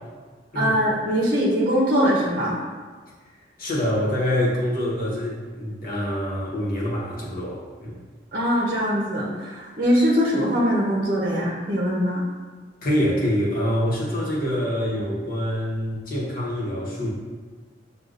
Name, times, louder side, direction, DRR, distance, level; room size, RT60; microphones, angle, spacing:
voice 1, 0.5-2.6 8.3-12.2, equal, 50° right, -4 dB, 0.7 m, -22 dB
voice 2, 3.6-8.0 12.8-17.1, equal, 55° left, -6 dB, 1.1 m, -25 dB
6.6 x 2.3 x 2.5 m, 1.4 s
head